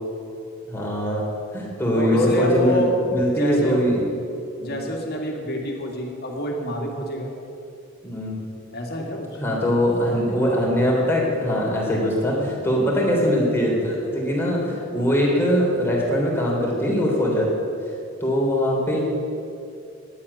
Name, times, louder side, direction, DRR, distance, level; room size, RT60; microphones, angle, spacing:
voice 1, 0.7-1.2 1.5-2.8 3.1-4.1 4.6-4.7 8.0-8.4 9.4-17.5 18.2-19.0, equal, 10° left, -4 dB, 3.2 m, -21 dB
voice 2, 1.9-2.9 3.3-3.8 4.6-7.3 8.7-9.3, equal, 50° left, 1 dB, 2.1 m, -27 dB
10.0 x 8.7 x 9.7 m, 2.5 s
head